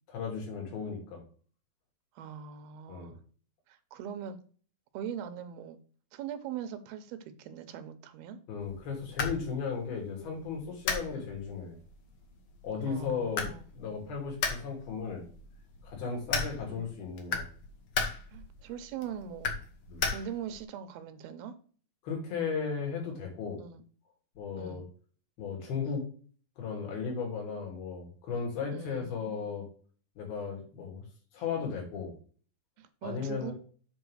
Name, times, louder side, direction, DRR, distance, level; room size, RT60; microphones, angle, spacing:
voice 1, 0.1-1.2 2.9-3.1 8.5-11.8 12.6-15.2 15.8-17.5 19.9-20.1 22.0-23.6 24.4-24.8 25.4-26.0 26.6-29.7 30.2-31.0 31.3-32.1 33.0-33.5, left 5 dB, 80° left, 4.5 m, -35 dB
voice 2, 2.2-3.2 3.7-4.4 4.9-5.8 6.1-8.4 11.1-11.2 12.9-13.6 16.7-16.9 18.3-19.6 20.1-21.6 23.6-23.8 24.6-24.9 28.7-29.5 32.8-33.5, right 8 dB, 80° right, 2.7 m, -41 dB
sound 1, 8.6-20.6, left 5 dB, 60° left, 1.5 m, -38 dB
8.1 x 3.7 x 6.3 m
omnidirectional pair, 4.3 m